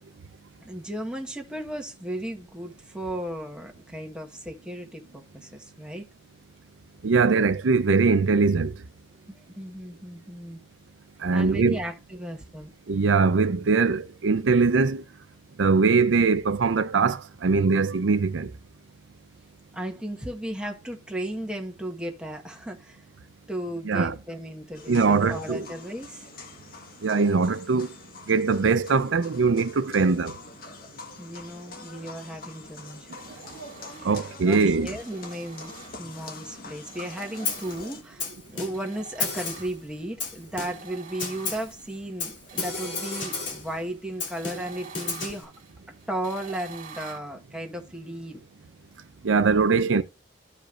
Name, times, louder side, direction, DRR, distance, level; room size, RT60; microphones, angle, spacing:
voice 1, 0.6-6.1 9.3-10.6 11.3-12.7 19.7-23.0 23.5-26.3 31.2-33.2 33.5-33.6 34.0-45.5 46.1-48.4, right 1 dB, 5° right, 1.2 m, -35 dB
voice 2, 7.0-8.7 11.2-11.8 12.9-15.0 15.6-18.5 23.9-24.1 24.9-25.6 27.0-27.9 28.3-30.3 34.0-34.9 49.2-50.0, right 4 dB, 90° right, 0.5 m, -21 dB
sound 1, 24.7-38.0, left 3 dB, 55° left, 1.4 m, -44 dB
sound 2, 33.1-34.4 35.0-36.3 36.9-38.2 38.7-40.1 40.6-47.2, right 6 dB, 50° right, 1.8 m, -46 dB
Snare drum, 37.4-37.8 38.2-38.9 39.2-39.8 40.2-40.9 41.2-41.7 42.2-43.7 44.2-45.4, left 4 dB, 80° left, 2.9 m, -32 dB
14.5 x 5.1 x 2.5 m
head